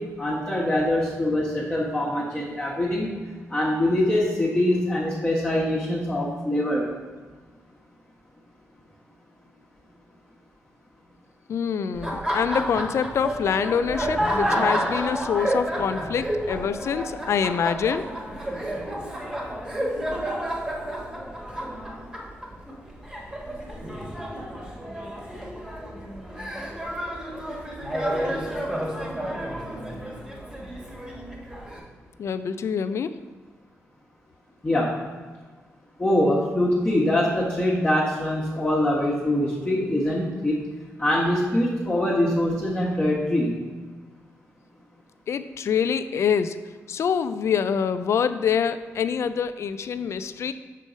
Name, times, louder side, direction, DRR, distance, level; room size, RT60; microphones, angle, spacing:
voice 1, 0.0-3.2 3.5-6.9 34.6-34.9 36.0-40.6 41.0-43.6, left 1 dB, 20° left, -7 dB, 1.2 m, -23 dB
voice 2, 11.5-18.1 32.2-33.1 45.3-46.6 46.9-50.5, left 7 dB, 60° left, 12 dB, 0.3 m, -25 dB
Laughter, 11.9-31.8, equal, 15° right, 1.3 m, -30 dB
6.4 x 3.8 x 5.0 m, 1.4 s
cardioid pair, 100°, 5 cm